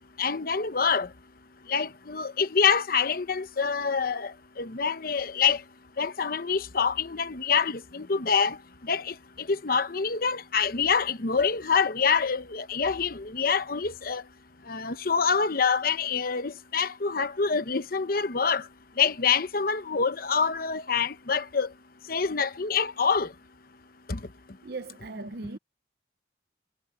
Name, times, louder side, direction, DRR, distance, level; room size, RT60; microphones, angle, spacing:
voice 1, 0.2-1.1 1.7-4.3 4.6-5.6 6.0-8.6 8.9-14.2 14.7-18.6 19.0-21.7 22.1-23.3 24.1-24.2, left 6 dB, 55° left, 0.9 m, -26 dB
voice 2, 24.6-25.6, right 3 dB, 60° right, 0.8 m, -38 dB
head